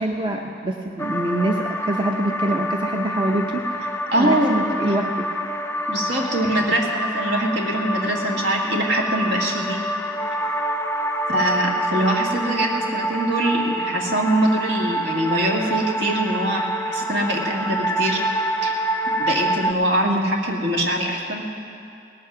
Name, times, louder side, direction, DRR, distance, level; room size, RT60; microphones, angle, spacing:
voice 1, 0.0-5.1 5.4-5.5 8.3-8.4 20.0-20.3, right 1 dB, 25° right, 2 dB, 0.6 m, -25 dB
sound 1, 1.0-19.7, right 1 dB, 15° left, 0.3 m, -27 dB
voice 2, 4.1-4.7 5.9-9.8 11.3-18.2 18.6-18.8 19.2-21.4, right 1 dB, 70° right, -1 dB, 1.9 m, -23 dB
18.5 x 8.5 x 6.1 m, 2.5 s
head